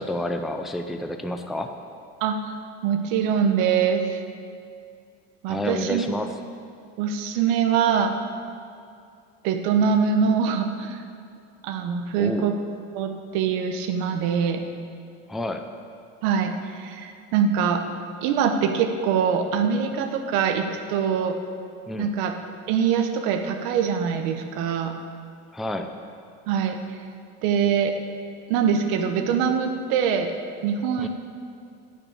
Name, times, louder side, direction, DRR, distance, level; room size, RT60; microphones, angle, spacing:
voice 1, 0.0-1.7 5.5-6.3 12.2-12.5 15.3-15.6 21.9-22.1 25.5-25.9 31.0-31.1, left 1 dB, ahead, 6 dB, 0.4 m, -29 dB
voice 2, 2.2-2.6 2.8-4.2 5.4-6.0 7.0-8.1 9.4-11.0 11.6-12.6 12.9-14.6 16.2-17.8 18.2-21.4 22.0-22.3 22.7-24.9 26.5-26.8 27.4-28.0 28.5-30.3 30.6-31.1, right 7 dB, 70° right, 6 dB, 1.0 m, -23 dB
10.5 x 6.1 x 8.7 m, 2.3 s
cardioid pair, 140°, 33 cm